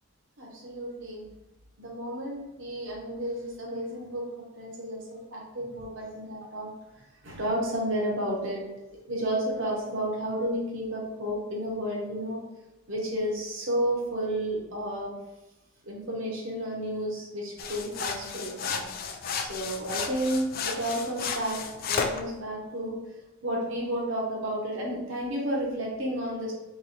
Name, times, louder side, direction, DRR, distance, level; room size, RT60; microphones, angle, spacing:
voice 1, 0.4-1.3 1.8-6.7 7.2-8.6 9.1-12.4 12.9-15.1 15.9-18.9 19.4-23.0 23.4-26.5, right 1 dB, 60° right, -3 dB, 0.8 m, -32 dB
sound 1, 17.6-22.2, left 5 dB, 45° left, 0.3 m, -33 dB
3.0 x 3.0 x 4.1 m, 0.97 s
head